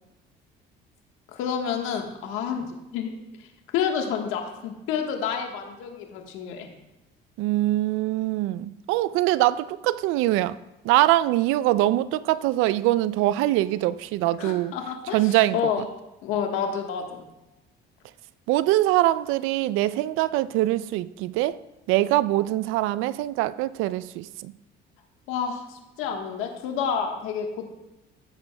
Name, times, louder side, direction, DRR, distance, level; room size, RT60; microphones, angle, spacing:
voice 1, 1.3-2.7 2.9-3.1 3.7-6.7 14.4-15.8 16.2-17.2 25.3-27.7, left 7 dB, 80° left, 3 dB, 1.3 m, -29 dB
voice 2, 7.4-10.6 10.8-14.7 15.1-15.8 18.5-21.6 21.9-24.5, right 15 dB, 80° right, 17 dB, 0.4 m, -23 dB
15.0 x 7.9 x 2.2 m, 0.98 s
supercardioid pair, 85°, 21 cm